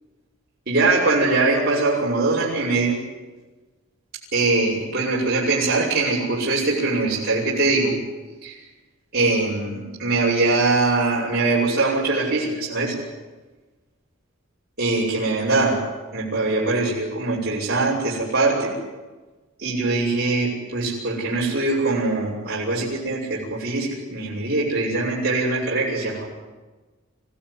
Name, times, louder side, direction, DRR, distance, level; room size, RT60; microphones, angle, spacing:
voice 1, 0.7-3.0 4.3-7.9 8.4-8.6 9.1-13.0 14.8-15.8 16.1-18.7 19.6-26.2, right 3 dB, 50° right, -5 dB, 6.8 m, -22 dB
27.0 x 17.5 x 10.0 m, 1.2 s
head